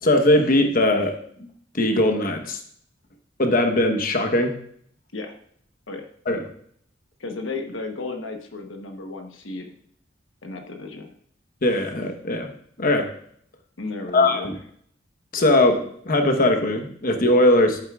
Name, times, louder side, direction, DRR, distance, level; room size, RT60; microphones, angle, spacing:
voice 1, 0.0-1.1 1.4-1.5 1.7-2.6 3.4-4.5 6.3-6.4 11.6-12.5 12.8-13.1 14.1-14.5 15.3-17.8, left 1 dB, 50° left, 5 dB, 1.1 m, -20 dB
voice 2, 7.2-9.7 10.4-11.1 13.8-14.6, left 3 dB, 90° left, 4 dB, 1.1 m, -34 dB
11.5 x 9.5 x 2.4 m, 0.63 s
head